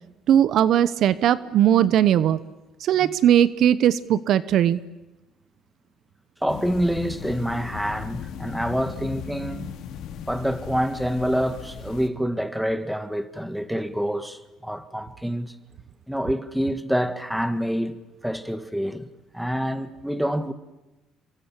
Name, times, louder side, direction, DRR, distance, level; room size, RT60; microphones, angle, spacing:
voice 1, 0.3-2.4 2.8-4.8, right 10 dB, 60° right, 0.9 m, -19 dB
voice 2, 6.4-9.7 10.3-15.5 16.1-18.0 18.2-20.5, equal, ahead, 1.6 m, -27 dB
sound 1, 6.5-12.1, left 9 dB, 70° left, 2.3 m, -37 dB
28.0 x 23.5 x 7.5 m
cardioid pair, 105°, 0 cm